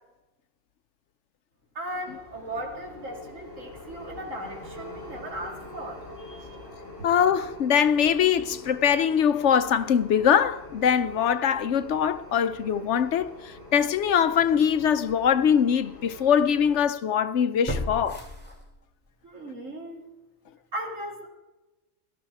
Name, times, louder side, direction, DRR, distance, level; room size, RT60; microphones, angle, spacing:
voice 1, 1.7-6.6 7.0-7.1 19.2-20.1 20.7-21.3, right 1 dB, 80° right, 2.8 m, -37 dB
sound 1, 1.9-16.9, left 2 dB, 40° left, 6.6 m, -45 dB
voice 2, 7.0-18.2, left 8 dB, 65° left, 0.9 m, -22 dB
sound 2, 14.4-14.5 15.1-15.2 17.6-19.1 19.5-19.6, left 1 dB, 10° left, 2.6 m, -34 dB
18.0 x 13.0 x 4.7 m
omnidirectional pair, 1.3 m